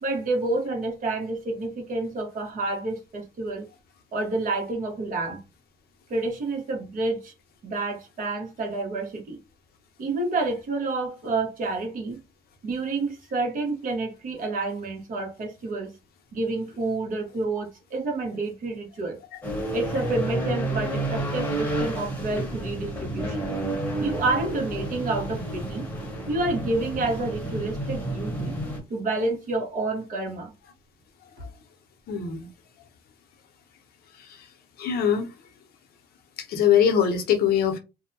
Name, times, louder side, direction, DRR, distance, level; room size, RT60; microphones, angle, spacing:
voice 1, 0.0-3.7 4.1-5.4 6.1-7.3 7.6-9.4 10.0-12.2 12.6-15.9 16.3-19.2 19.7-23.5 24.0-25.9 26.3-28.6 28.9-30.5, right 2 dB, 55° right, 1.1 m, -29 dB
sound 1, 19.4-28.8, right 1 dB, 10° left, 1.0 m, -30 dB
voice 2, 32.1-32.5 34.8-35.3 36.5-37.8, left 8 dB, 65° left, 0.7 m, -22 dB
2.6 x 2.1 x 2.7 m
cardioid pair, 110°, 17 cm